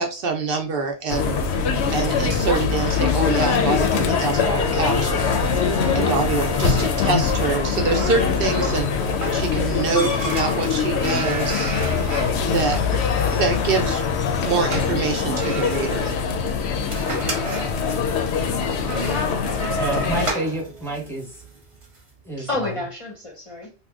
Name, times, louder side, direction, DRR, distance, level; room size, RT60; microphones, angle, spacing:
voice 1, 0.0-1.4 1.9-5.5 5.9-8.9 9.3-11.7 12.4-14.0 14.4-16.1, right 4 dB, 65° right, 0.8 m, -25 dB
sound 1, 1.1-20.3, left 6 dB, 85° left, 0.8 m, -23 dB
Wind instrument woodwind instrument, 4.1-8.0, right 2 dB, 85° right, 1.1 m, -36 dB
sound 2, 5.0-22.0, right 2 dB, 35° right, 0.8 m, -34 dB
voice 2, 19.8-21.4 22.2-22.7, right 1 dB, ahead, 0.8 m, -28 dB
voice 3, 22.4-23.7, left 2 dB, 35° left, 0.7 m, -35 dB
2.8 x 2.2 x 3.5 m
omnidirectional pair, 1.1 m